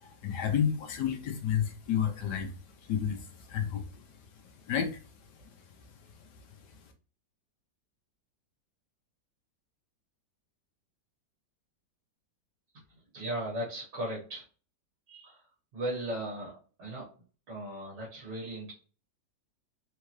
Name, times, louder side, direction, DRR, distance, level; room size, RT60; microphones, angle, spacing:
voice 1, 0.0-2.5 2.8-3.8 4.7-4.9, left 8 dB, 70° left, 5 dB, 1.3 m, -30 dB
voice 2, 13.1-14.4 15.1-15.4 15.7-16.5 16.8-17.1 17.5-18.7, right 1 dB, 70° right, -5 dB, 2.3 m, -36 dB
4.6 x 2.7 x 3.1 m, 0.37 s
omnidirectional pair, 1.9 m